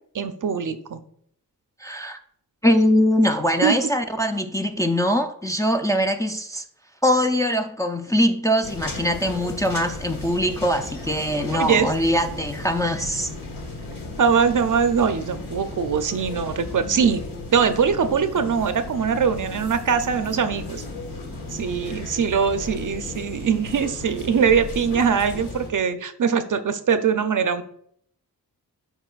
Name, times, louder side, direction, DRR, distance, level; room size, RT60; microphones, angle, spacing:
voice 1, 0.1-1.0 3.6-3.8 11.5-11.9 14.2-17.2 17.5-20.8 21.5-27.6, right 6 dB, 55° right, 10 dB, 0.6 m, -22 dB
voice 2, 1.8-2.2 2.6-6.6 7.0-13.3, equal, 10° left, 4 dB, 0.4 m, -22 dB
sound 1, 8.6-25.7, left 2 dB, 70° left, 1.5 m, -35 dB
12.0 x 4.7 x 2.4 m, 0.67 s
wide cardioid pair, 115°, 36 cm